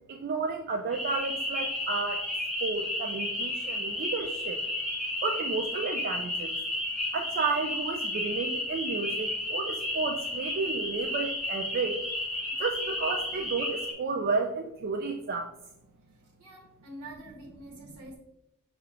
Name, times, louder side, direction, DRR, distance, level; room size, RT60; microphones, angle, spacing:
voice 1, 0.1-2.3 2.6-4.6 5.2-6.5 7.1-12.0 12.6-15.5, right 4 dB, 45° right, 3 dB, 0.3 m, -32 dB
sound 1, 0.9-13.9, left 1 dB, ahead, 0.9 m, -33 dB
voice 2, 16.4-18.2, right 1 dB, 85° right, -2 dB, 1.1 m, -46 dB
6.3 x 2.4 x 3.4 m, 0.84 s
head